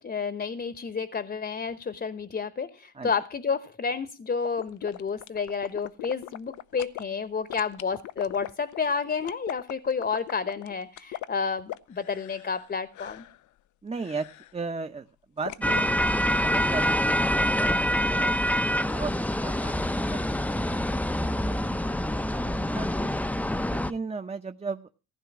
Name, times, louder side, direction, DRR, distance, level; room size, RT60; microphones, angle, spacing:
voice 1, 0.0-13.2, left 5 dB, 30° left, 13 dB, 1.0 m, -30 dB
sound 1, 4.4-7.0 7.5-12.7 12.9-13.4 14.0-14.5 15.5-15.9, left 14 dB, 80° left, 0.8 m, -40 dB
voice 2, 13.8-15.1 15.3-19.8 20.1-20.9 21.2-21.8 22.3-23.1 23.7-24.9, right 4 dB, 20° right, 8 dB, 0.9 m, -37 dB
sound 2, 15.6-23.9, equal, 5° left, 0.6 m, -26 dB
15.5 x 10.5 x 6.1 m, 0.35 s
cardioid pair, 90°, 30 cm